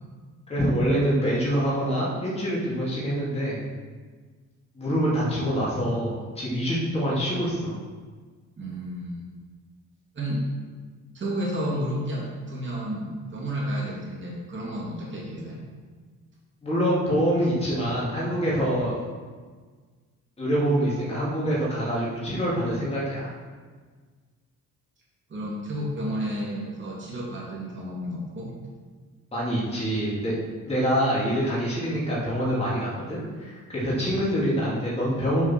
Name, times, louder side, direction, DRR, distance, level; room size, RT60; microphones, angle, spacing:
voice 1, 0.5-3.6 4.7-7.8 16.6-19.0 20.4-23.3 29.3-30.3 30.7-35.4, equal, 20° left, -7 dB, 2.9 m, -25 dB
voice 2, 8.6-9.3 10.1-10.5 11.1-15.6 25.3-28.5, equal, 35° right, -4 dB, 2.5 m, -31 dB
7.9 x 5.5 x 6.0 m, 1.5 s
cardioid pair, 125°, 32 cm